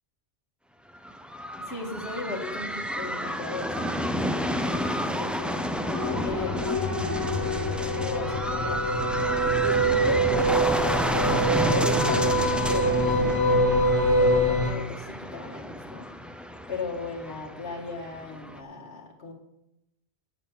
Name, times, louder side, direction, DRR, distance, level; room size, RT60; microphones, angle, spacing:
sound 1, 0.9-18.6, equal, ahead, 0.3 m, -31 dB
voice 1, 1.6-8.9 9.6-11.4 11.7-13.4 14.1-16.1 16.7-19.3, left 3 dB, 65° left, -1 dB, 2.1 m, -37 dB
sound 2, 5.3-14.7, right 1 dB, 85° left, 1.9 m, -25 dB
8.5 x 8.1 x 7.4 m, 0.86 s
omnidirectional pair, 1.2 m